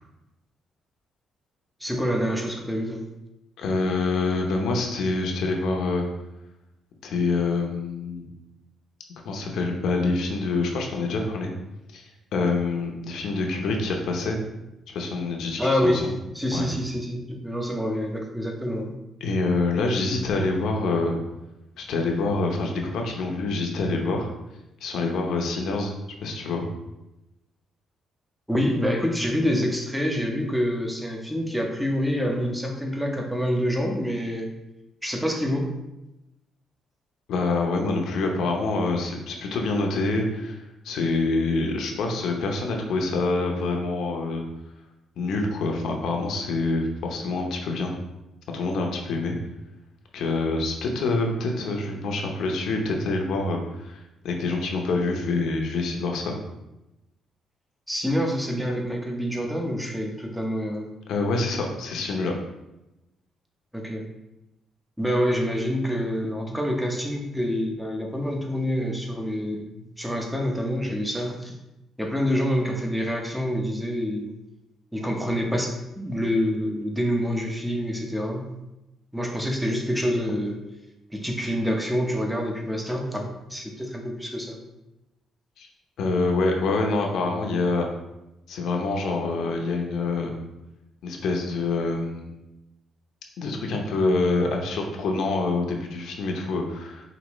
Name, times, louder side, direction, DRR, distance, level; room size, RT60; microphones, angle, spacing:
voice 1, 1.8-3.0 15.6-16.1 16.3-18.9 28.5-34.5 35.0-35.8 57.9-60.9 63.7-64.1 65.0-71.5 72.0-74.3 74.9-78.5 79.1-80.6 81.1-84.6, equal, 5° right, 1 dB, 0.8 m, -27 dB
voice 2, 3.6-6.0 7.0-8.3 9.2-11.5 11.9-14.4 14.9-16.1 16.5-16.7 19.2-21.1 21.8-24.3 24.8-25.9 26.2-26.7 37.3-40.6 40.8-44.4 45.2-47.9 48.5-49.4 50.1-56.4 61.1-62.3 85.6-85.7 86.0-87.9 88.5-90.3 91.0-92.3 93.4-97.0, left 3 dB, 75° left, 2 dB, 0.8 m, -26 dB
5.1 x 2.8 x 3.1 m, 0.94 s
cardioid pair, 90°, 0 cm